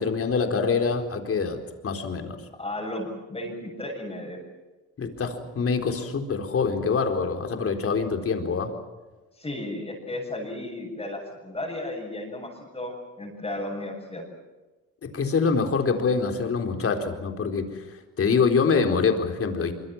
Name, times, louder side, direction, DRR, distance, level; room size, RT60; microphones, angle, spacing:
voice 1, 0.0-2.4 5.0-8.7 15.1-17.8 18.2-19.7, left 5 dB, 50° left, 5 dB, 4.3 m, -25 dB
voice 2, 2.6-4.4 9.3-14.2, left 1 dB, 20° left, -3 dB, 7.2 m, -34 dB
24.5 x 24.5 x 7.5 m, 1.2 s
cardioid pair, 90°, 30 cm